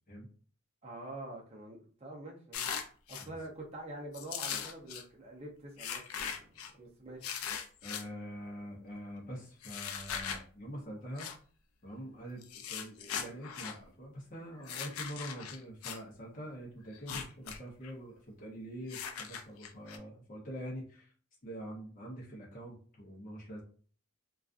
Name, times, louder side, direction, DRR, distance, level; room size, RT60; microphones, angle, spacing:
voice 1, 0.8-2.7 3.1-7.2, right 2 dB, 30° right, -2 dB, 0.6 m, -46 dB
sound 1, 2.5-3.3 4.1-5.0 5.8-6.7 7.2-8.0 9.6-10.4 11.2-11.4 12.4-13.8 14.6-16.0 16.9-17.6 17.8-17.9 18.9-20.0, left 7 dB, 75° left, 0.4 m, -39 dB
voice 2, 7.8-11.3 11.8-21.1 21.4-23.6, equal, 35° left, -3 dB, 0.6 m, -45 dB
2.4 x 2.3 x 2.4 m, 0.43 s
head